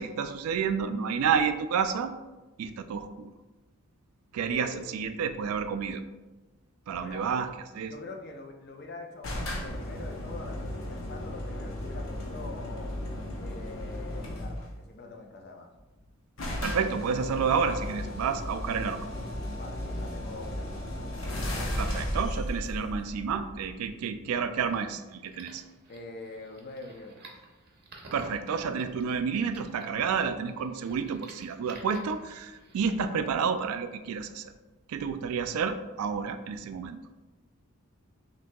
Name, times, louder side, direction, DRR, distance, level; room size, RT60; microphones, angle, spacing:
voice 1, 0.0-2.1 2.6-3.3 4.3-6.0 6.9-7.5 7.8-7.9 16.6-19.0 21.8-25.6 28.1-34.5 34.9-37.0, right 6 dB, 90° right, 9 dB, 0.3 m, -30 dB
voice 2, 4.3-5.0 6.9-7.4 7.9-12.9 13.4-15.7 19.6-20.7 22.1-22.2 25.9-27.3 35.2-35.4, left 3 dB, 50° left, 2 dB, 0.5 m, -44 dB
sound 1, 9.2-14.8 15.8-15.9 16.0-16.1 16.4-23.9, left 1 dB, 65° left, 0.8 m, -35 dB
sound 2, 24.5-33.0, right 3 dB, 45° right, 0.7 m, -52 dB
5.9 x 2.7 x 2.2 m, 1.2 s
head